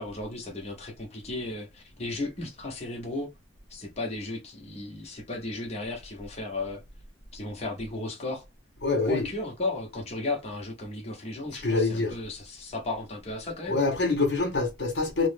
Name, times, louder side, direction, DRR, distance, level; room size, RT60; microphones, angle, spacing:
voice 1, 0.0-3.3 3.7-6.8 7.3-8.4 9.1-13.8, left 2 dB, 35° left, 0.8 m, -35 dB
voice 2, 8.8-9.3 11.6-12.2 13.7-15.3, left 3 dB, 60° left, 0.9 m, -25 dB
3.0 x 2.1 x 3.2 m
head